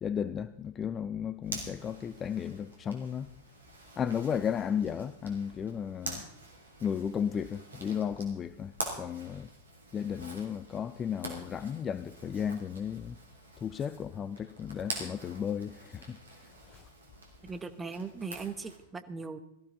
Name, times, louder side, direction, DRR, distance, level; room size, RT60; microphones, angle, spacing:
voice 1, 0.0-3.3 4.0-6.2 6.8-8.7 9.0-9.5 9.9-13.2 13.6-16.2 16.7-16.8, left 8 dB, 25° left, 0.5 m, -34 dB
Zipper (clothing), 1.4-18.8, right 2 dB, 75° right, 3.1 m, -46 dB
voice 2, 17.4-19.4, right 4 dB, 15° right, 1.1 m, -39 dB
17.5 x 14.0 x 4.0 m
figure-of-eight pair, 90°, 0 cm